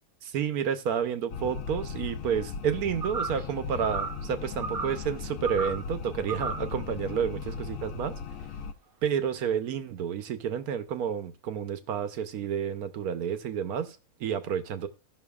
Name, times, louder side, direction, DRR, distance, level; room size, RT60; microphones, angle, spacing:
voice 1, 0.2-7.4 7.7-8.1 9.0-14.9, right 8 dB, 80° right, 10 dB, 1.3 m, -30 dB
sound 1, 1.3-8.7, left 6 dB, 70° left, 1.0 m, -37 dB
sound 2, 3.0-3.5 3.8-4.2 4.6-5.0 5.4-5.9 6.3-6.7, right 4 dB, 40° right, 1.2 m, -34 dB
16.5 x 6.1 x 2.3 m, 0.32 s
omnidirectional pair, 1.6 m